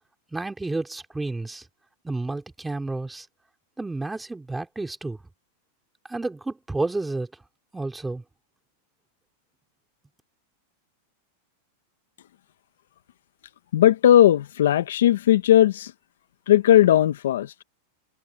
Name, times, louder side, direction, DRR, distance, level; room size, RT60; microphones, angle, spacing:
voice 1, 0.3-1.6 2.0-3.3 3.8-5.2 6.1-7.3 7.7-8.2, right 2 dB, 5° right, 3.0 m, -30 dB
voice 2, 13.7-15.9 16.5-17.5, left 12 dB, 85° left, 1.0 m, -17 dB
supercardioid pair, 145°, 0 cm